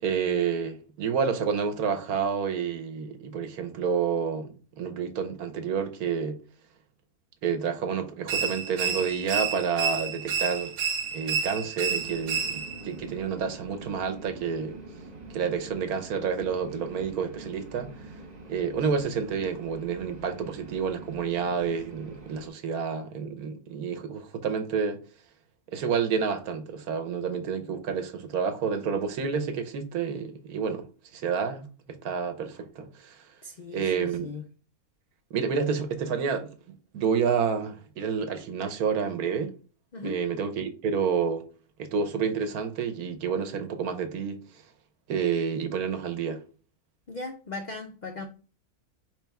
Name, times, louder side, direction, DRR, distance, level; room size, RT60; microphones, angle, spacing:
voice 1, 0.0-6.4 7.4-10.7 11.1-14.8 15.3-17.9 18.5-25.0 25.7-30.8 31.1-31.7 32.0-33.2 33.7-34.3 35.3-36.5 36.9-39.5 40.0-41.4 41.8-44.4 45.1-46.4, right 6 dB, 80° right, 1.3 m, -29 dB
sound 1, 8.3-12.9, right 6 dB, 65° right, 0.9 m, -30 dB
sound 2, 12.0-22.5, right 2 dB, 35° right, 0.7 m, -45 dB
voice 2, 33.4-34.4 39.9-40.2 47.1-48.2, left 3 dB, 70° left, 0.4 m, -38 dB
4.4 x 3.4 x 3.4 m
omnidirectional pair, 1.6 m